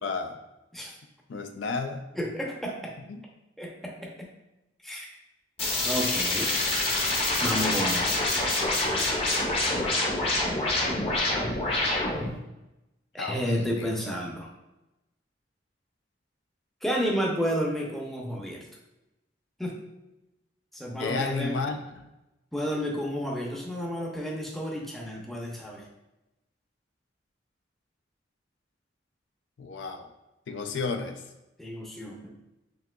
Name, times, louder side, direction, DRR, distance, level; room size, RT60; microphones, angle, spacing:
voice 1, 0.0-0.4 1.3-2.1 3.1-3.2 13.2-13.9 21.0-22.0 29.6-30.1 30.5-31.2, left 4 dB, 80° left, 6 dB, 0.4 m, -32 dB
voice 2, 2.1-3.0 3.6-4.3 4.8-5.2 5.8-6.5 7.4-8.3 13.1-14.5 16.8-18.7 19.6-19.8 20.7-21.6 22.5-25.9 31.6-32.3, equal, ahead, -2 dB, 0.5 m, -31 dB
sound 1, 5.6-12.3, left 2 dB, 30° left, 0.8 m, -26 dB
6.0 x 2.8 x 2.2 m, 0.96 s
head